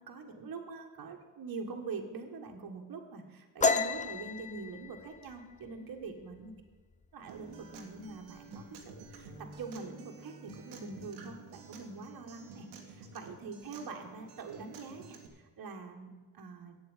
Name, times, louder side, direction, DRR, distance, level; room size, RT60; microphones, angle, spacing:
voice 1, 0.0-6.5 7.1-16.8, right 4 dB, 45° right, 3 dB, 1.7 m, -44 dB
sound 1, 3.6-7.0 7.4-7.7 8.1-8.6 8.9-9.6, left 4 dB, 15° left, 0.6 m, -33 dB
Acoustic guitar, 7.3-15.3, right 4 dB, 90° right, 1.5 m, -51 dB
8.3 x 7.9 x 8.2 m, 1.3 s
hypercardioid pair, 60°, 49 cm